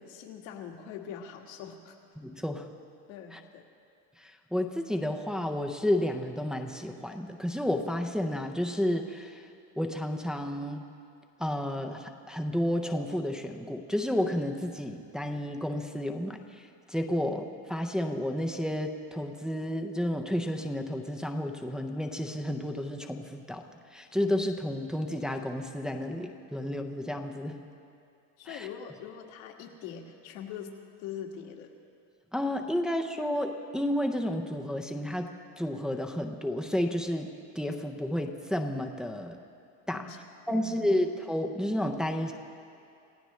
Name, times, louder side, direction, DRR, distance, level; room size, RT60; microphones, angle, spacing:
voice 1, 0.0-2.0 3.1-3.6 28.4-30.7 31.0-31.7 39.9-40.2 40.5-41.0, left 8 dB, 80° left, 2 dB, 1.9 m, -42 dB
voice 2, 2.2-2.7 3.3-3.4 4.2-9.5 9.8-10.9 11.4-23.6 23.9-27.6 28.5-28.7 32.3-39.4 39.9-40.1 40.5-42.3, left 1 dB, ahead, 3 dB, 0.5 m, -31 dB
28.0 x 16.0 x 3.2 m, 2.6 s
cardioid pair, 165°, 38 cm